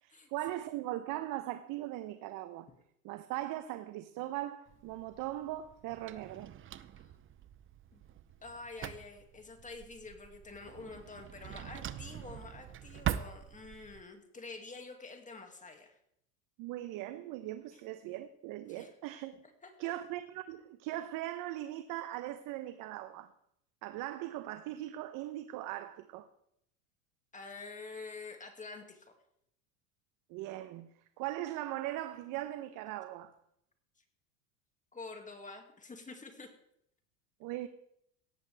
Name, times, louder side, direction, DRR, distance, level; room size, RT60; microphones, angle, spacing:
voice 1, 0.0-2.7 3.0-6.5 16.6-19.4 19.8-23.3 23.8-26.3 30.3-30.9 31.2-33.3 37.4-37.7, right 14 dB, 55° right, 1.0 m, -39 dB
Drawer open or close, 4.7-14.0, right 10 dB, 30° right, 0.8 m, -43 dB
voice 2, 8.4-16.0 17.7-17.8 18.7-18.9 19.6-19.9 27.3-29.1 34.9-36.5, left 3 dB, 20° left, 2.3 m, -48 dB
17.5 x 13.5 x 3.5 m
hypercardioid pair, 95°, 40 cm